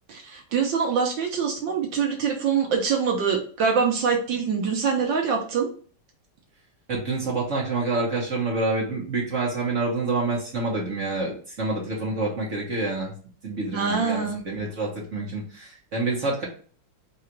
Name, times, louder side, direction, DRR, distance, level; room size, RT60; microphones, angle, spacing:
voice 1, 0.1-5.7 13.7-14.4, right 6 dB, 65° right, 2 dB, 1.3 m, -24 dB
voice 2, 6.9-13.1 13.4-16.4, right 3 dB, 45° right, -4 dB, 1.1 m, -27 dB
3.8 x 2.4 x 4.4 m, 0.42 s
omnidirectional pair, 2.4 m